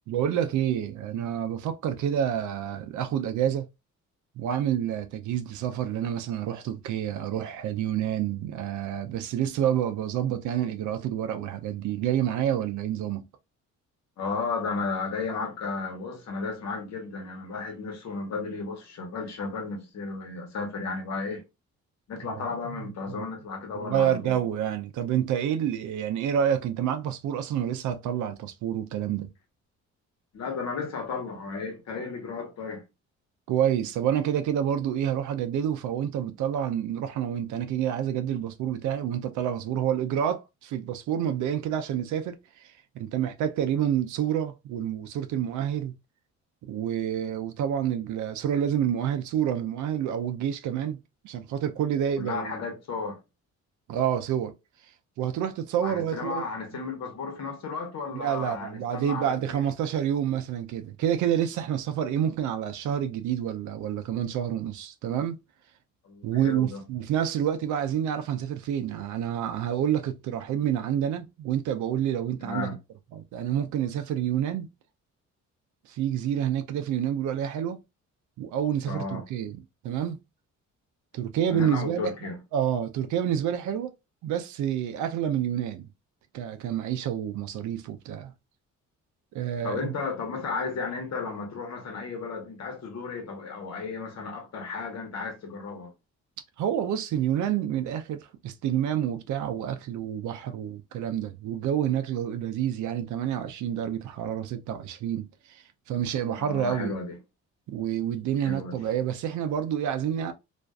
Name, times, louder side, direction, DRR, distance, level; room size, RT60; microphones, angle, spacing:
voice 1, 0.1-3.7 4.4-13.2 22.7-22.8 23.7-29.3 33.5-45.9 46.6-52.6 53.9-54.5 55.2-56.4 58.1-65.4 66.2-72.7 73.1-74.7 75.9-77.8 78.4-80.2 81.1-82.1 82.5-83.9 84.2-85.9 86.3-88.3 89.3-89.9 96.6-106.9 107.7-110.3, right 10 dB, 75° right, 0.5 m, -28 dB
voice 2, 14.2-21.4 22.1-24.4 30.3-32.8 52.2-53.2 55.8-59.6 66.0-66.8 72.4-72.8 78.9-79.3 81.4-82.4 89.6-95.9 106.3-107.2 108.4-108.8, left 4 dB, 60° left, 1.0 m, -34 dB
2.5 x 2.3 x 2.2 m
cardioid pair, 90°, 30 cm